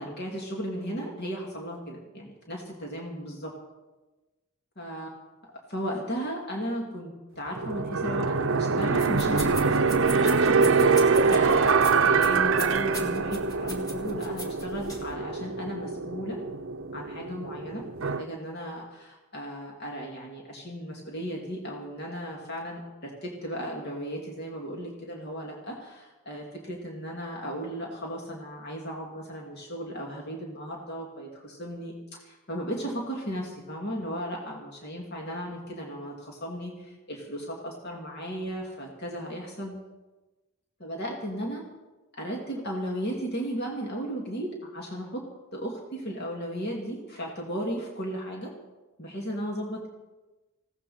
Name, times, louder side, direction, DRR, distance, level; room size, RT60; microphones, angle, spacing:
voice 1, 0.0-3.5 4.8-5.2 5.7-16.4 16.9-39.7 40.8-41.6 42.2-45.2 45.5-48.5 49.0-49.9, equal, 50° left, -1 dB, 2.6 m, -35 dB
sound 1, 7.6-18.2, right 4 dB, 60° right, 0.6 m, -24 dB
sound 2, 8.9-15.1, equal, 20° left, 2.4 m, -41 dB
19.5 x 17.0 x 4.3 m, 1.1 s
head